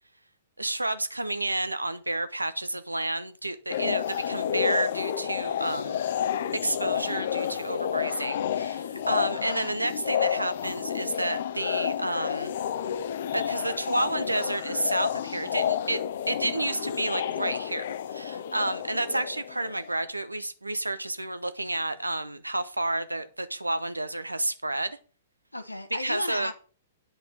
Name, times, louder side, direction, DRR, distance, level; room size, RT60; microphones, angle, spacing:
voice 1, 0.6-6.0 6.6-12.5 13.3-16.0 16.3-25.0 26.0-26.5, right 2 dB, 85° right, 0.8 m, -30 dB
sound 1, 3.7-19.9, left 9 dB, 55° left, 0.7 m, -30 dB
voice 2, 8.9-9.2 25.5-26.5, left 1 dB, 85° left, 1.2 m, -34 dB
9.1 x 5.3 x 5.8 m
figure-of-eight pair, 110°, 0 cm